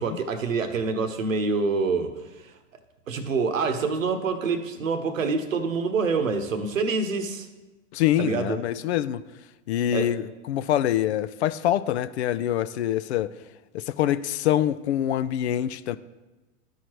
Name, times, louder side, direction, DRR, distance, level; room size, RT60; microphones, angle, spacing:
voice 1, 0.0-2.5 3.1-7.5 8.2-8.6 9.9-10.1, right 4 dB, 80° right, 8 dB, 0.9 m, -26 dB
voice 2, 7.9-9.2 9.7-13.4 13.7-16.0, left 12 dB, 60° left, 15 dB, 0.5 m, -25 dB
12.5 x 4.8 x 3.0 m, 1.1 s
hypercardioid pair, 105°, 38 cm